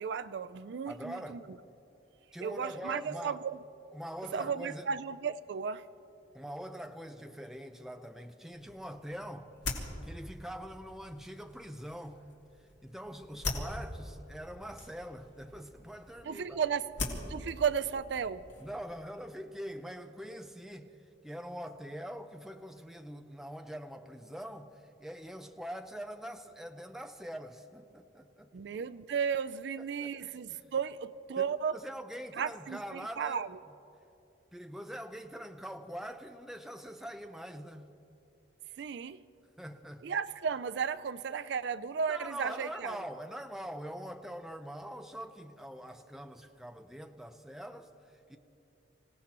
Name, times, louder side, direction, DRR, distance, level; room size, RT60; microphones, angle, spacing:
voice 1, 0.0-1.4 2.4-3.6 4.3-5.8 16.3-16.9 17.3-18.5 28.5-31.8 32.4-33.6 38.8-39.2 40.0-43.0, right 6 dB, 65° right, 0.4 m, -34 dB
voice 2, 0.9-1.4 2.3-3.4 3.9-4.9 6.3-12.2 12.8-16.6 18.6-20.9 21.2-28.5 29.8-30.1 30.5-30.7 31.4-31.5 31.7-33.5 34.5-37.9 39.6-40.0 42.1-48.4, equal, ahead, 0.5 m, -43 dB
sound 1, 8.5-18.8, left 2 dB, 80° left, 2.5 m, -43 dB
26.5 x 17.0 x 2.9 m
head